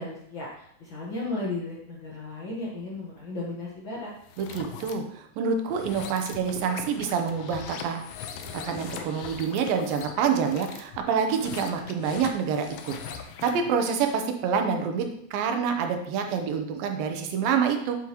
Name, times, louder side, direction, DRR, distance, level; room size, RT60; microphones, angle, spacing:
voice 1, 0.0-4.1, left 2 dB, 55° left, -5 dB, 1.3 m, -35 dB
sound 1, 4.2-4.9 5.6-13.7, left 7 dB, 80° left, 2.4 m, -40 dB
voice 2, 4.4-8.0 8.5-12.9 13.4-18.0, right 6 dB, 80° right, 5 dB, 2.7 m, -27 dB
8.6 x 7.7 x 3.0 m, 0.70 s
omnidirectional pair, 4.1 m